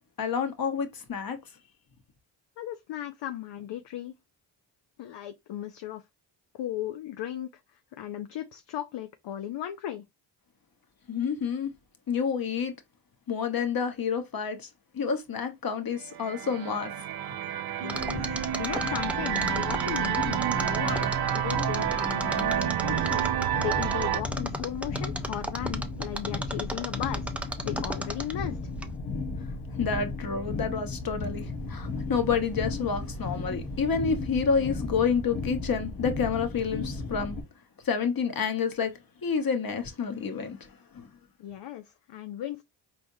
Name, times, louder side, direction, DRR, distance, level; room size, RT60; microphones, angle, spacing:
voice 1, 0.2-1.4 11.1-11.7 12.1-12.7 13.3-14.7 14.9-16.9 29.8-37.4 37.8-38.9 39.2-41.1, left 6 dB, 50° left, 1.2 m, -29 dB
voice 2, 2.6-4.1 5.0-6.0 6.5-10.0 17.8-23.3 23.6-28.6 41.4-42.6, left 11 dB, 65° left, 0.6 m, -36 dB
sound 1, 16.0-24.2, right 10 dB, 55° right, 0.6 m, -29 dB
sound 2, 17.9-37.4, left 3 dB, 85° left, 1.3 m, -35 dB
Mechanisms, 17.9-28.5 28.8-28.9, right 1 dB, 5° right, 0.6 m, -34 dB
4.3 x 3.4 x 2.7 m
cardioid pair, 60°, 46 cm